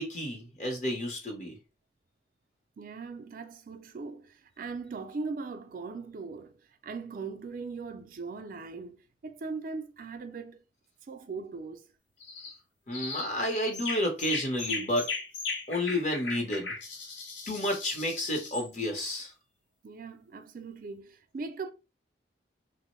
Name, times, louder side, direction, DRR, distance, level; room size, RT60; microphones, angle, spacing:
voice 1, 0.0-1.5 12.9-15.1 15.7-16.7 17.5-19.3, left 1 dB, 40° left, 0.8 m, -31 dB
voice 2, 2.8-6.5 6.8-10.6 11.1-11.9 19.8-21.7, right 4 dB, 50° right, 0.4 m, -39 dB
sound 1, 12.2-12.6 12.9-13.3 13.7-18.7, left 4 dB, 85° left, 0.9 m, -37 dB
3.0 x 2.0 x 2.9 m
head